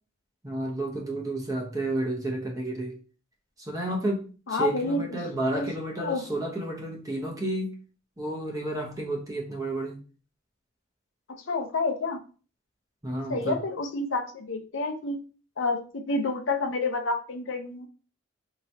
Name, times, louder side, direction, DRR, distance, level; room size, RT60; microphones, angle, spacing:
voice 1, 0.4-3.0 3.6-7.7 8.2-10.0 13.0-13.6, right 1 dB, 15° right, -1 dB, 0.9 m, -31 dB
voice 2, 4.5-5.2 5.5-5.7 6.0-6.2 11.5-12.2 13.3-15.2 15.6-17.9, left 3 dB, 65° left, 5 dB, 0.7 m, -29 dB
4.6 x 2.9 x 2.7 m, 0.36 s
head